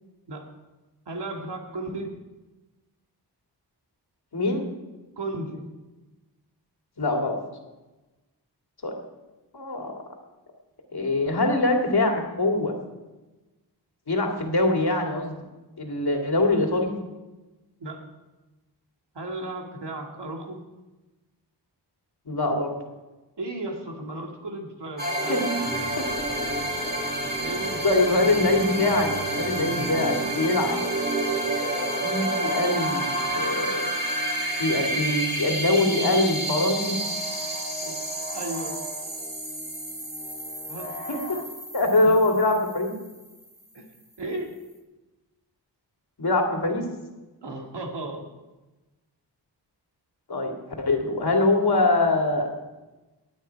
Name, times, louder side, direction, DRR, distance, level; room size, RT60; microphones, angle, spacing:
voice 1, 1.1-2.1 5.2-5.7 17.8-18.0 19.1-20.6 23.4-25.5 27.4-27.8 37.8-38.0 38.3-38.8 40.7-41.0 42.0-42.4 43.7-43.9 44.2-44.5 47.4-48.3, right 2 dB, 75° right, 1 dB, 2.4 m, -35 dB
voice 2, 4.3-4.7 7.0-7.4 8.8-8.9 9.5-9.9 10.9-12.7 14.1-15.3 15.8-16.9 22.3-22.7 25.3-25.4 26.0-26.1 27.8-29.1 29.4-30.8 32.0-33.9 34.6-37.0 41.1-41.4 41.7-42.9 46.2-46.8 50.3-52.5, left 2 dB, 65° left, 1 dB, 2.5 m, -23 dB
sound 1, 25.0-43.4, right 1 dB, 20° right, 3.0 m, -29 dB
sound 2, 33.2-41.4, left 1 dB, 20° left, 2.5 m, -42 dB
19.0 x 8.8 x 4.6 m, 1.1 s
wide cardioid pair, 70°, 42 cm